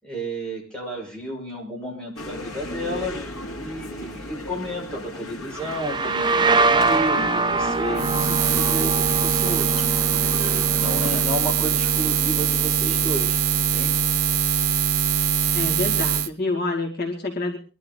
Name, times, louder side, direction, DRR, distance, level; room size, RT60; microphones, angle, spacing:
voice 1, 0.0-3.2 3.6-9.7 10.7-14.0, equal, 5° left, -4 dB, 6.1 m, -32 dB
sound 1, 2.2-11.2, left 1 dB, 80° left, 2.7 m, -36 dB
sound 2, 5.6-13.1, right 3 dB, 20° right, 0.7 m, -25 dB
Buzz, 7.9-16.3, right 8 dB, 90° right, 0.9 m, -22 dB
voice 2, 15.5-17.6, left 2 dB, 50° left, 0 dB, 2.3 m, -27 dB
22.5 x 12.0 x 4.0 m, 0.35 s
head